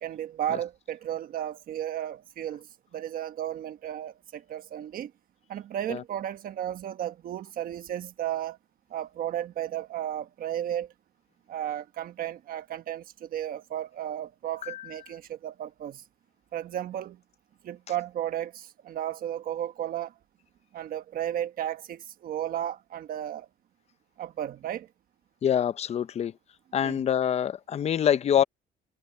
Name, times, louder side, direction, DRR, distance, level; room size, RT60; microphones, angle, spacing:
voice 1, 0.0-2.7 2.9-5.1 5.5-8.6 8.9-10.9 11.5-16.0 16.5-17.2 17.6-20.1 20.7-23.5 24.2-24.9 26.8-27.0, right 11 dB, 60° right, 1.2 m, -34 dB
voice 2, 25.4-26.3 26.7-28.4, left 9 dB, 40° left, 0.7 m, -25 dB
cardioid pair, 110°, 17 cm